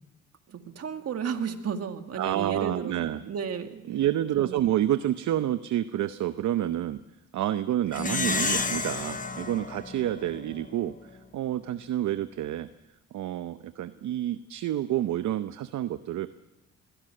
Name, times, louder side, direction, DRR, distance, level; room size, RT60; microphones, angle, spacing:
voice 1, 0.5-3.8 4.4-4.6, right 7 dB, 55° right, 6 dB, 2.1 m, -33 dB
voice 2, 2.2-3.2 3.9-7.0 7.3-12.7 13.1-16.3, right 12 dB, 70° right, 12 dB, 0.8 m, -29 dB
Plucked string instrument, 7.9-10.7, left 4 dB, 25° left, 1.3 m, -31 dB
22.0 x 16.0 x 7.8 m, 0.96 s
cardioid pair, 90°, 30 cm